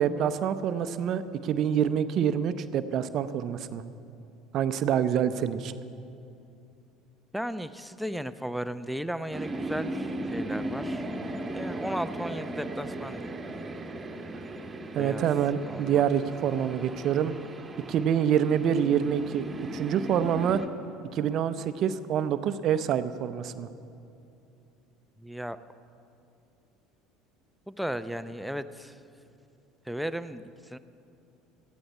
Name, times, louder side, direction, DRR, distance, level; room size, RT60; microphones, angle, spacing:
voice 1, 0.0-3.8 4.5-5.7 14.9-17.3 17.9-19.4 19.7-20.6 21.1-23.7, right 9 dB, 50° right, 12 dB, 0.6 m, -26 dB
voice 2, 7.3-13.6 15.0-15.3 15.7-16.0 25.2-25.6 27.7-29.0 29.9-30.8, equal, ahead, 11 dB, 0.6 m, -35 dB
sound 1, 9.3-20.7, right 1 dB, 20° right, 1.4 m, -37 dB
18.0 x 14.0 x 4.3 m, 2.6 s
hypercardioid pair, 65°, 0 cm